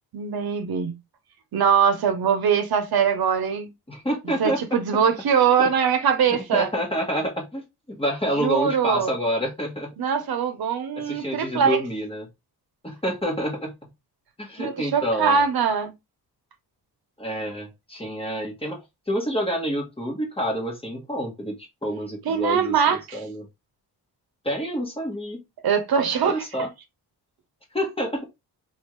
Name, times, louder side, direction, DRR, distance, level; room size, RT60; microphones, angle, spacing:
voice 1, 0.1-1.0 1.5-3.7 4.4-6.7 8.4-9.1 10.0-11.8 14.6-15.9 22.2-23.2 25.6-26.4, right 7 dB, 65° right, 0.7 m, -22 dB
voice 2, 3.9-4.8 5.6-5.7 6.5-9.9 11.0-12.3 12.8-13.8 14.4-15.4 17.2-23.5 24.4-25.4 26.2-26.7 27.7-28.3, equal, 15° left, 1.1 m, -28 dB
3.4 x 2.4 x 3.1 m
wide cardioid pair, 110°, 39 cm